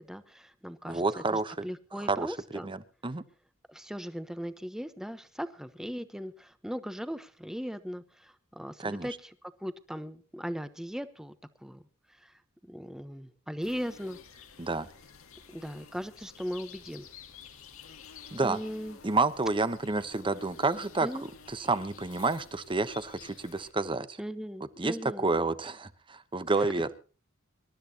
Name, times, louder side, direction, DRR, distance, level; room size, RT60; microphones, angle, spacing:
voice 1, 0.0-2.7 3.7-9.3 9.6-11.3 11.6-11.8 12.2-12.3 12.7-14.2 15.5-17.1 18.4-19.0 21.0-21.3 24.2-25.3 26.6-26.7, equal, 5° right, 11 dB, 1.0 m, -38 dB
voice 2, 0.9-1.7 2.0-3.2 8.8-9.1 14.6-14.9 18.3-18.6 19.0-21.1 21.5-24.2 24.8-26.9, right 3 dB, 25° right, 13 dB, 0.9 m, -29 dB
sound 1, 13.6-23.7, left 6 dB, 80° left, 1.9 m, -51 dB
26.0 x 12.5 x 2.9 m, 0.36 s
head